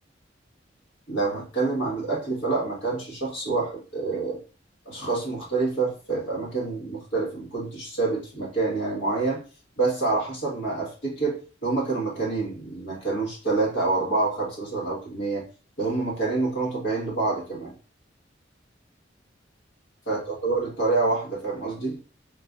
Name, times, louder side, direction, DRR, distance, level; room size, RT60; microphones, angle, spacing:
voice 1, 1.1-4.4 4.8-9.4 9.8-15.4 15.8-17.7 20.1-22.0, right 3 dB, 80° left, -3 dB, 1.5 m, -27 dB
3.9 x 2.5 x 2.5 m, 0.36 s
head